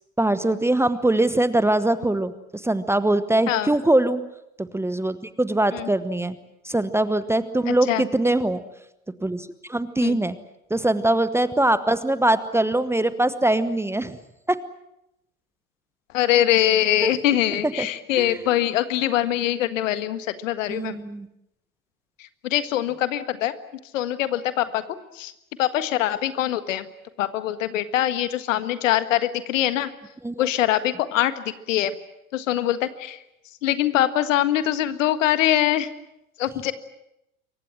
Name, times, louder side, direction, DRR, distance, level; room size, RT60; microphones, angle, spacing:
voice 1, 0.2-4.2 4.6-6.4 6.6-8.6 9.2-10.3 10.7-14.2 14.5-14.6 17.0-17.1 17.8-17.9 18.2-18.4 20.7-21.3 30.2-30.4, right 1 dB, 5° right, 13 dB, 1.1 m, -22 dB
voice 2, 7.7-8.1 10.0-10.2 16.1-21.0 22.4-23.5 23.9-24.8 25.1-25.3 25.6-26.9 27.2-29.9 30.4-31.9 32.3-33.2 33.6-35.9 36.4-36.7, left 12 dB, 60° left, 12 dB, 1.7 m, -23 dB
27.0 x 23.5 x 7.5 m, 0.86 s
figure-of-eight pair, 80°, 43 cm